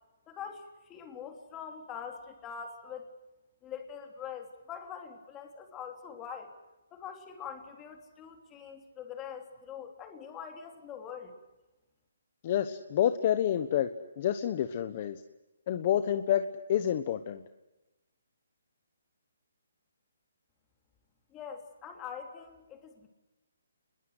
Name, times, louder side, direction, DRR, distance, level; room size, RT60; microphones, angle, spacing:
voice 1, 0.3-3.1 3.6-6.5 6.9-11.3 21.3-23.1, left 7 dB, 15° left, 4 dB, 3.3 m, -43 dB
voice 2, 12.4-13.9 14.2-15.2 15.7-17.4, left 10 dB, 35° left, 10 dB, 1.1 m, -28 dB
29.0 x 21.5 x 8.0 m, 0.99 s
hypercardioid pair, 165°, 0 cm